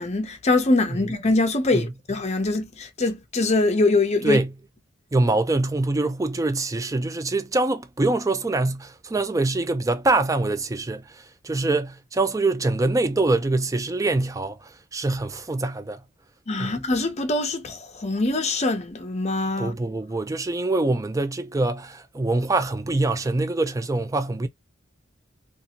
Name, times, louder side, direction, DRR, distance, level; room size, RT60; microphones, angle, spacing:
voice 1, 0.0-4.4 16.5-19.8, left 2 dB, 35° left, 0.6 m, -23 dB
voice 2, 5.1-16.0 16.6-16.8 19.6-24.5, right 2 dB, 15° right, 0.4 m, -24 dB
2.6 x 2.5 x 2.8 m
head